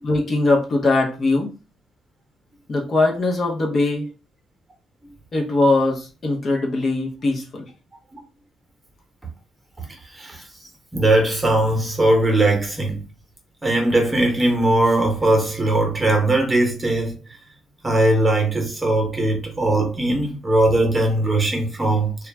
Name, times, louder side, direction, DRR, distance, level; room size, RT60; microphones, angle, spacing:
voice 1, 0.0-1.5 2.7-4.1 5.3-7.7, left 2 dB, 45° left, 0.7 m, -21 dB
voice 2, 10.1-10.4 10.9-13.0 13.6-17.2 17.8-22.2, right 1 dB, 15° right, 1.0 m, -19 dB
2.3 x 2.0 x 3.4 m
cardioid pair, 90°, 0 cm